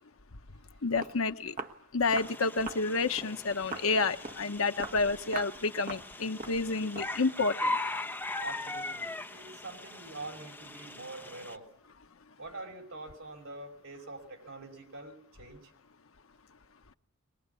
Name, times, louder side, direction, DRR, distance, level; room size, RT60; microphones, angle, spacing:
Walk footsteps, 0.7-0.8 1.0-1.2 1.6-1.8 2.1-2.4 2.7-2.9 3.2-3.4 3.7-3.9 4.2-4.5 4.8-5.0 5.3-5.6 5.9-6.1 6.4-6.6 7.0-7.2, right 3 dB, 45° right, 1.5 m, -40 dB
voice 1, 0.8-1.6 1.9-7.8, left 3 dB, 75° left, 8 dB, 1.0 m, -30 dB
sound 1, 2.1-11.6, left 2 dB, 10° left, 1.3 m, -39 dB
voice 2, 8.4-11.7 12.4-15.7, right 2 dB, 70° right, 2 dB, 5.6 m, -45 dB
23.0 x 20.5 x 8.4 m, 0.76 s
head